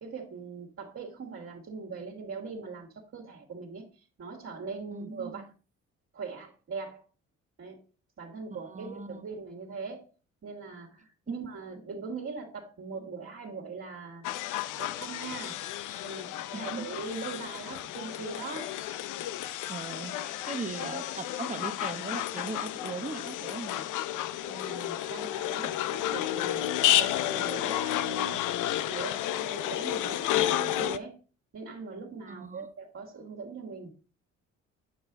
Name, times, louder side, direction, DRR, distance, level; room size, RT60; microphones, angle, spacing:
voice 1, 0.0-5.5 6.1-7.0 7.6-7.8 8.2-10.1 10.4-14.2 14.8-15.6 15.9-18.8 24.5-28.4 28.9-31.2 31.5-33.9, right 4 dB, 50° right, -2 dB, 2.2 m, -41 dB
voice 2, 4.9-5.4 8.5-9.3 11.3-11.4 16.5-16.9 19.7-23.9 32.3-32.7, right 4 dB, 25° right, 10 dB, 1.1 m, -39 dB
sound 1, 14.2-31.0, left 12 dB, 85° left, 0.6 m, -31 dB
9.4 x 5.5 x 3.9 m, 0.34 s
cardioid pair, 90°, 30 cm